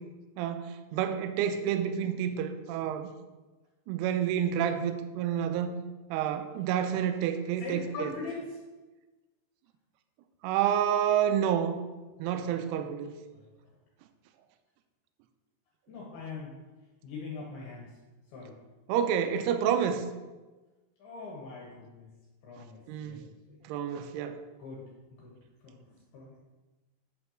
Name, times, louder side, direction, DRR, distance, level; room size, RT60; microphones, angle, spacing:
voice 1, 0.4-3.1 3.9-5.8 6.1-8.1 10.4-11.8 12.2-13.1 18.9-20.1 22.9-23.3 23.7-24.4, right 9 dB, 85° right, 8 dB, 2.3 m, -29 dB
voice 2, 7.6-8.6 13.3-13.5 15.9-16.6 17.0-18.0 18.3-18.6 21.0-22.1 22.4-23.2 23.5-23.6 24.6-25.3 25.6-26.4, left 3 dB, 70° left, -3 dB, 2.9 m, -42 dB
8.6 x 4.5 x 6.1 m, 1.2 s
omnidirectional pair, 5.2 m